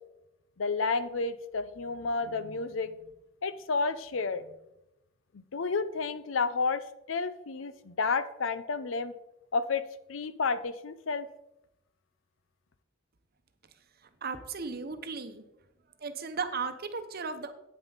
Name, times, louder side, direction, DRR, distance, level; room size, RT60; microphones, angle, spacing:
voice 1, 0.6-2.9 3.4-4.4 5.3-6.8 7.1-9.1 9.5-9.8 10.1-11.3, left 4 dB, 75° left, 14 dB, 0.6 m, -31 dB
voice 2, 14.2-15.4 16.0-17.5, right 5 dB, 50° right, 9 dB, 0.9 m, -35 dB
9.2 x 8.9 x 4.0 m, 0.90 s
head